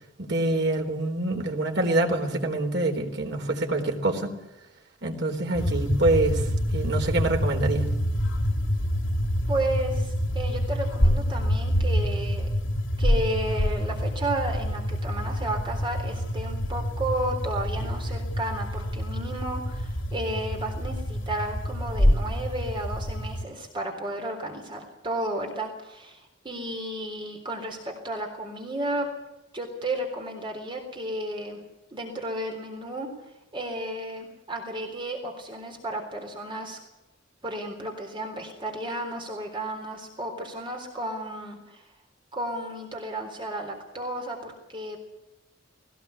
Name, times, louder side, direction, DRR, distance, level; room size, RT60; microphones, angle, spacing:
voice 1, 0.2-4.3 5.0-6.4 6.7-7.9, right 2 dB, 60° right, 2 dB, 4.0 m, -25 dB
sound 1, 5.5-23.4, equal, 80° left, 2.7 m, -27 dB
voice 2, 9.5-12.5 13.0-29.1 29.5-31.6 31.9-33.1 33.5-36.8 37.4-41.8 42.3-45.0, right 1 dB, 25° right, 2 dB, 3.7 m, -33 dB
20.0 x 18.0 x 8.3 m, 0.95 s
head